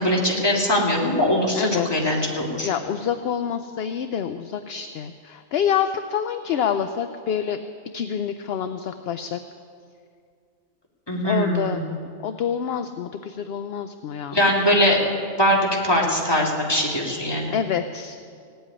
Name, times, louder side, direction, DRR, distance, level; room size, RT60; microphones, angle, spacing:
voice 1, 0.0-2.7 11.1-11.8 14.3-15.0 15.4-17.5, left 1 dB, 20° left, -2 dB, 2.5 m, -21 dB
voice 2, 1.5-2.3 2.6-7.6 7.9-9.4 11.2-11.8 12.2-14.4 17.5-18.2, left 8 dB, 60° left, 9 dB, 0.7 m, -27 dB
16.5 x 8.0 x 9.7 m, 2.2 s
omnidirectional pair, 1.4 m